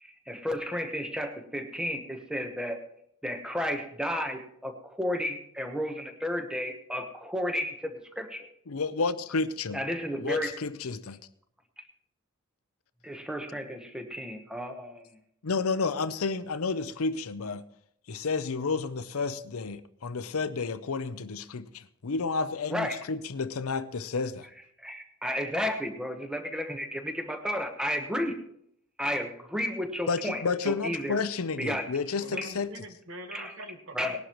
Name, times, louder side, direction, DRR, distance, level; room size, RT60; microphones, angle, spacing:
voice 1, 0.0-2.8 3.2-8.5 9.7-10.5 13.0-15.0 22.7-23.0 24.8-28.4 29.0-31.2 31.6-31.8 32.4-32.5 33.3-33.5 33.9-34.2, equal, 5° right, 1.0 m, -32 dB
voice 2, 8.7-9.8 10.2-11.2 15.4-17.6 18.1-24.5 30.1-32.7, left 4 dB, 80° left, 0.6 m, -31 dB
voice 3, 32.2-34.2, right 1 dB, 60° right, 1.4 m, -43 dB
19.5 x 11.5 x 3.1 m
head